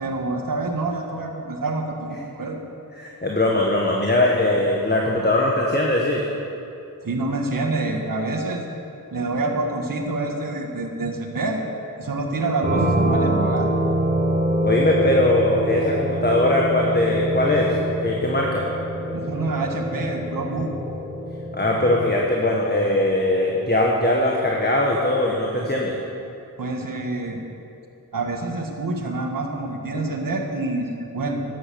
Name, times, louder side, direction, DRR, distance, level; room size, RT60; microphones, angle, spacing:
voice 1, 0.0-2.6 7.0-8.6 9.1-11.7 12.0-13.7 19.1-20.7 26.6-27.4 28.1-31.4, right 2 dB, 70° right, 2 dB, 1.7 m, -27 dB
voice 2, 3.0-6.2 14.6-18.6 21.5-25.9, left 1 dB, 30° left, -2 dB, 1.6 m, -20 dB
sound 1, 12.6-22.1, right 1 dB, 20° right, 2.7 m, -25 dB
13.5 x 9.9 x 7.0 m, 2.7 s
wide cardioid pair, 80°, 34 cm